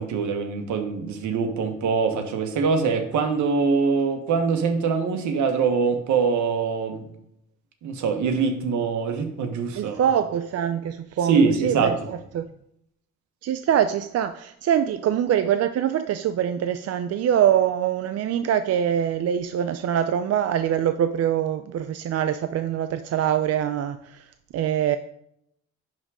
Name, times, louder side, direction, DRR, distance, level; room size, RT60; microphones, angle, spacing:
voice 1, 0.0-7.0 7.8-10.0 11.3-11.9, right 5 dB, 75° right, 1.3 m, -23 dB
voice 2, 9.7-12.5 13.4-24.3 24.5-25.0, right 9 dB, 55° right, 0.5 m, -24 dB
10.5 x 3.7 x 4.9 m
cardioid pair, 90°, 30 cm